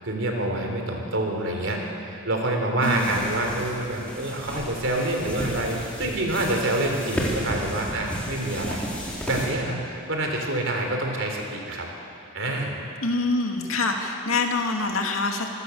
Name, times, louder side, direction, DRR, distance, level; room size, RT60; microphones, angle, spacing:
voice 1, 0.0-8.9 9.3-11.9 12.3-12.8, right 1 dB, 65° right, 1 dB, 3.6 m, -27 dB
voice 2, 2.8-3.2 13.0-15.5, left 3 dB, 75° left, 2 dB, 2.5 m, -25 dB
sound 1, 2.8-9.5, equal, 5° left, 3.8 m, -33 dB
26.0 x 16.5 x 7.2 m, 2.6 s
head